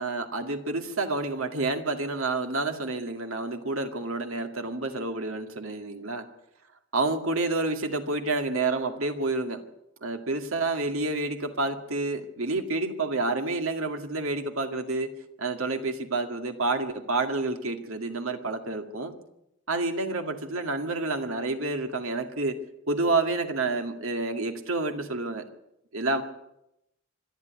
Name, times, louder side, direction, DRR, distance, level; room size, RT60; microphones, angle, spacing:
voice 1, 0.0-6.3 6.9-9.6 10.0-19.2 19.7-22.6 22.9-25.4 25.9-26.2, right 3 dB, 75° right, 6 dB, 2.1 m, -29 dB
26.0 x 11.0 x 9.5 m, 0.83 s
head